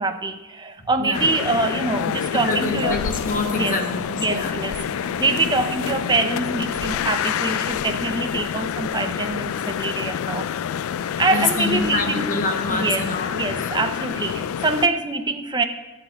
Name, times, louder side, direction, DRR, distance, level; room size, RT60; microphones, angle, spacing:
voice 1, 0.0-3.0 3.6-3.8 4.2-10.9 11.2-12.3 12.7-13.0 13.3-15.6, right 3 dB, 20° right, 7 dB, 0.6 m, -24 dB
sound 1, 1.1-14.9, left 8 dB, 65° left, 0.3 m, -27 dB
sound 2, 1.3-7.2, right 7 dB, 50° right, 1.5 m, -43 dB
voice 2, 2.3-4.5 9.0-9.2 11.3-13.3 13.6-13.7, left 3 dB, 35° left, 4 dB, 1.2 m, -26 dB
12.5 x 4.2 x 7.8 m, 1.1 s
head